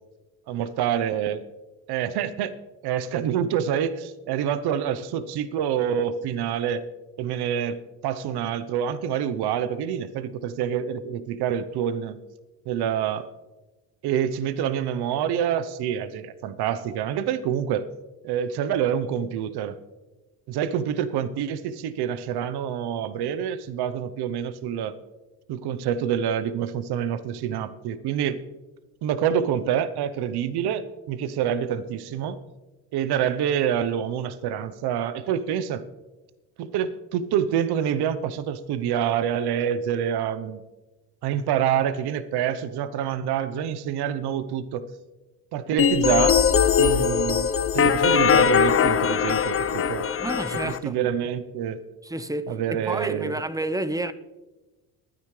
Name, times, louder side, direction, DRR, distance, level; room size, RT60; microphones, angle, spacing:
voice 1, 0.5-1.4 1.9-2.5 2.8-6.8 7.2-12.2 12.7-13.3 14.0-17.9 18.2-19.8 20.5-25.0 25.5-28.4 29.0-32.4 32.9-35.8 36.6-40.6 41.2-44.9 45.5-46.4 46.8-50.1 50.6-51.8 52.5-53.4, right 9 dB, 65° right, 0.9 m, -27 dB
sound 1, 45.8-50.8, left 7 dB, 30° left, 0.8 m, -21 dB
voice 2, 50.2-51.0 52.0-54.1, right 1 dB, 10° right, 0.8 m, -30 dB
22.5 x 9.8 x 3.3 m
supercardioid pair, 70°, 42 cm